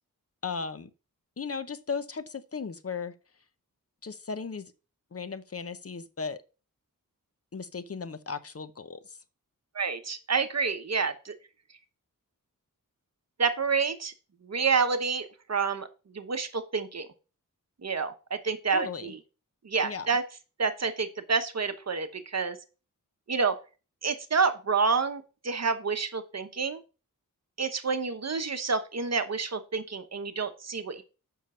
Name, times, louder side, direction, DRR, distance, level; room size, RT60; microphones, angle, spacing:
voice 1, 0.4-0.9 1.4-3.1 4.0-4.7 5.1-6.4 7.5-9.2 18.7-19.1 19.8-20.1, left 5 dB, 45° left, 0.8 m, -36 dB
voice 2, 9.7-11.3 13.4-14.1 14.4-15.9 16.1-17.1 17.8-19.2 19.6-20.2 20.6-22.6 23.3-23.6 24.0-26.8 27.6-31.0, right 5 dB, 50° right, 1.0 m, -28 dB
7.3 x 5.9 x 5.5 m
wide cardioid pair, 110°, 34 cm